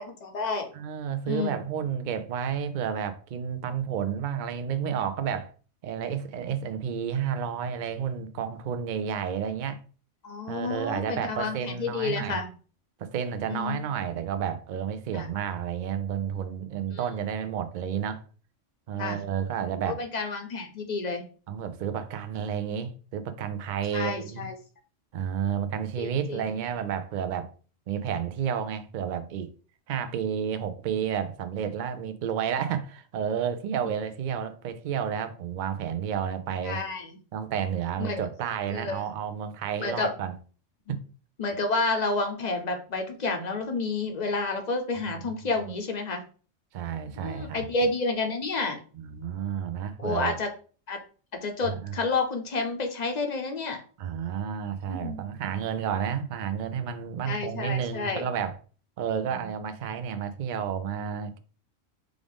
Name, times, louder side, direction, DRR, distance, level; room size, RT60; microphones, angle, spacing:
voice 1, 0.0-0.7 1.3-1.6 10.2-12.5 13.5-13.8 15.1-15.3 19.0-19.2 20.0-21.2 23.9-24.5 26.0-26.4 36.6-37.1 38.0-38.2 38.7-39.0 39.8-40.1 40.9-41.0 41.4-46.2 47.2-48.8 50.0-50.5 50.9-51.0 51.4-53.8 54.9-55.2 57.3-58.2, left 3 dB, 40° left, 0.7 m, -30 dB
voice 2, 0.7-5.5 5.8-9.8 10.5-12.4 13.0-18.2 18.9-20.0 21.5-24.5 25.1-27.5 27.9-29.5 29.9-36.8 37.3-40.3 40.9-41.0 45.1-45.3 45.6-45.7 46.7-47.7 48.9-50.4 51.6-51.9 54.0-58.6 59.0-61.4, right 8 dB, 60° right, 0.5 m, -31 dB
4.9 x 2.5 x 3.5 m
omnidirectional pair, 1.3 m